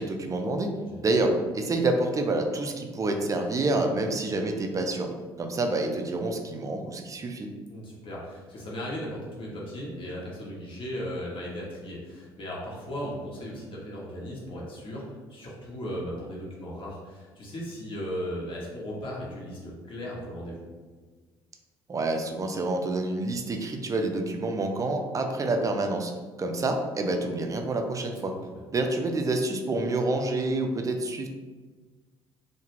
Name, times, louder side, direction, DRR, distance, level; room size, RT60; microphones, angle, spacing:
voice 1, 0.0-0.8 1.0-5.1 5.4-7.5 21.9-26.1 26.4-28.3 28.7-31.3, right 2 dB, 25° right, 4 dB, 0.4 m, -28 dB
voice 2, 7.7-20.6 28.5-28.6, equal, 45° left, -4 dB, 0.9 m, -37 dB
2.3 x 2.2 x 3.1 m, 1.4 s
figure-of-eight pair, 50°, 13 cm